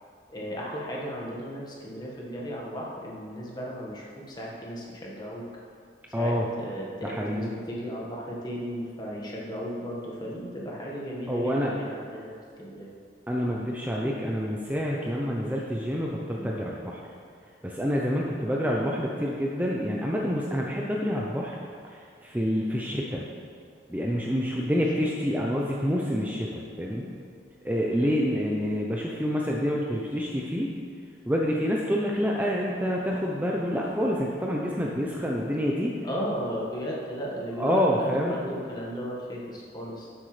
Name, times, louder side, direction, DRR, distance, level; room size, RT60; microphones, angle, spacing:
voice 1, 0.3-5.4 6.1-12.9 16.3-16.6 22.8-23.1 26.5-26.7 27.9-28.1 36.0-37.8 38.1-40.1, equal, 25° left, -4 dB, 1.6 m, -36 dB
voice 2, 6.1-6.4 7.0-7.5 11.3-11.7 13.3-17.0 17.6-21.6 21.8-23.2 23.9-27.0 27.6-30.7 31.3-35.9 37.6-38.3, equal, 10° right, -2 dB, 0.6 m, -27 dB
12.0 x 8.0 x 3.3 m, 2.3 s
head